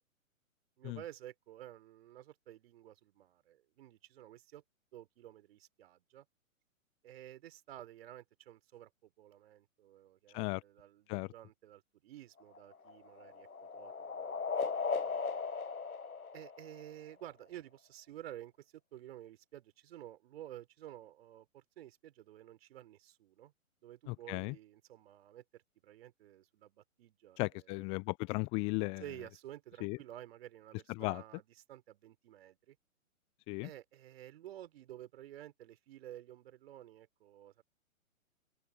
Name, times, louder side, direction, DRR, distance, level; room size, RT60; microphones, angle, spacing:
voice 1, 0.8-4.6 4.9-6.3 7.0-15.4 16.3-23.5 23.8-27.4 27.7-27.8 29.0-32.8 33.6-37.6, right 12 dB, 45° right, 4.2 m, -52 dB
sound 1, 12.4-17.1, left 5 dB, 85° left, 1.2 m, -38 dB
voice 2, 24.1-24.5 27.4-29.0 29.8-30.0 30.9-31.2 33.5-33.7, left 29 dB, 15° left, 0.6 m, -36 dB
open air
figure-of-eight pair, 125°, 42 cm